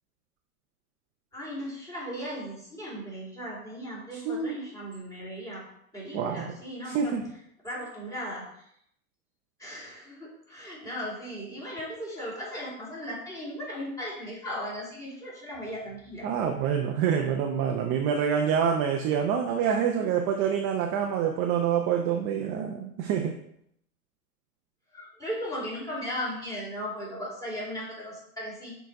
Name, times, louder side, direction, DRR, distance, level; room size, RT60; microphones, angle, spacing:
voice 1, 1.3-5.6 5.9-7.2 7.6-8.6 9.6-16.3 24.9-28.8, equal, 5° left, -5 dB, 2.8 m, -37 dB
voice 2, 4.2-4.7 6.1-6.5 6.8-7.2 16.2-23.3, right 7 dB, 25° right, 2 dB, 0.6 m, -26 dB
6.5 x 4.0 x 4.7 m, 0.72 s
hypercardioid pair, 120°, 45 cm